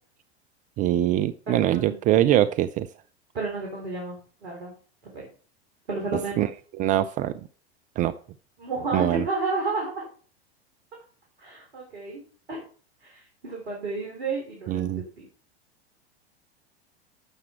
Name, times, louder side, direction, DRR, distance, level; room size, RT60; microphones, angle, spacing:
voice 1, 0.8-2.9 6.4-7.3 8.0-8.1 8.9-9.3 14.7-15.0, right 12 dB, 25° right, 13 dB, 0.4 m, -23 dB
voice 2, 1.5-2.0 3.3-4.7 5.1-5.3 5.9-6.5 8.6-10.1 11.4-12.2 12.5-12.6 13.0-15.3, right 3 dB, 70° right, -1 dB, 3.5 m, -31 dB
11.5 x 7.4 x 4.3 m, 0.42 s
figure-of-eight pair, 90°, 33 cm